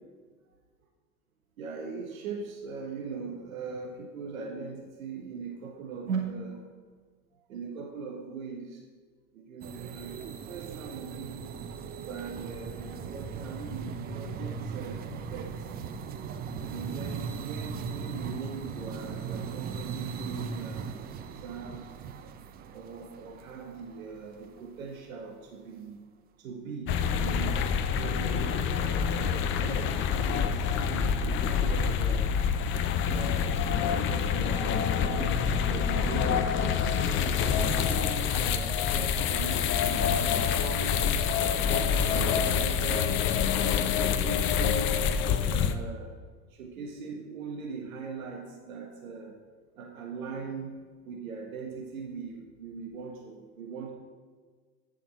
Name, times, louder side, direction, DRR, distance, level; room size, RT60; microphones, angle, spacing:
voice 1, 1.6-6.6 7.3-8.8 9.3-11.5 12.0-15.9 16.6-21.9 22.7-26.0 26.4-27.5 27.9-36.5 37.1-41.0 41.3-45.1 45.5-46.1 46.5-49.4 49.8-53.9, right 5 dB, 65° right, 1 dB, 1.7 m, -40 dB
sound 1, 9.6-24.9, right 6 dB, 20° right, 0.5 m, -38 dB
sound 2, 26.9-45.7, left 7 dB, 25° left, 0.6 m, -27 dB
10.0 x 5.8 x 5.9 m, 1.5 s
figure-of-eight pair, 90°, 45 cm